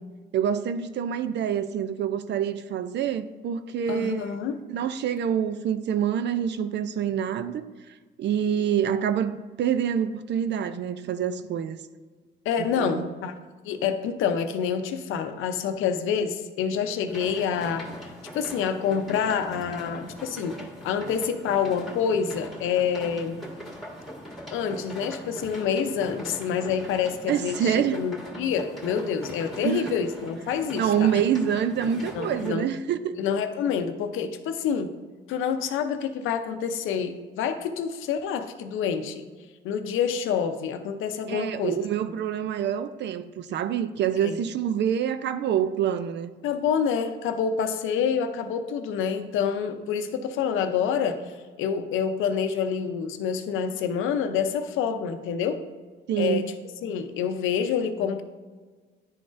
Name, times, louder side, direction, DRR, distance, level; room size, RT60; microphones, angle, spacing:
voice 1, 0.3-4.4 4.7-7.7 8.2-11.8 12.8-13.1 27.3-28.0 29.6-29.9 30.7-33.2 41.3-46.3 56.1-56.5, right 8 dB, 65° right, 0.4 m, -26 dB
voice 2, 3.9-4.6 12.5-13.3 13.6-17.9 18.3-20.6 20.8-23.4 24.5-31.2 32.1-32.7 33.2-34.9 35.3-39.3 39.6-41.8 44.2-44.4 46.4-51.2 51.6-55.6 56.2-56.5 56.8-58.2, left 7 dB, 90° left, 0.6 m, -27 dB
sound 1, 17.1-32.5, equal, ahead, 1.7 m, -41 dB
10.5 x 3.9 x 2.5 m
cardioid pair, 90°, 20 cm